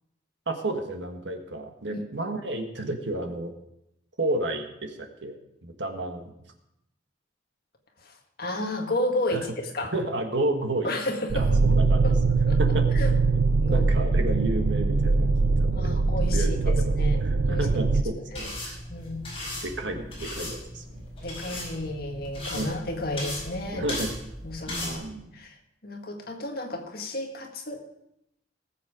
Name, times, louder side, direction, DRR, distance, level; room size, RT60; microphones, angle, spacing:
voice 1, 0.5-3.5 4.2-5.3 5.6-6.3 9.3-9.4 9.9-10.9 11.3-12.0 12.6-12.9 13.7-15.9 16.3-16.9 17.2-18.8 19.6-21.1 21.4-21.6 22.5-22.7 23.7-24.1 24.7-25.3, right 2 dB, 70° right, 4 dB, 1.6 m, -31 dB
voice 2, 8.0-9.9 10.8-11.8 12.0-12.2 12.5-12.6 12.9-13.1 13.6-14.1 15.7-17.2 17.5-17.7 18.3-18.5 18.9-19.2 21.2-23.9 24.4-25.0 25.3-25.6 25.8-27.8, left 1 dB, 50° left, 2 dB, 1.8 m, -32 dB
sound 1, 11.3-18.0, right 3 dB, 85° right, 0.6 m, -22 dB
sound 2, 18.3-24.9, left 1 dB, 30° left, 4.9 m, -37 dB
19.0 x 7.6 x 4.9 m, 0.81 s
head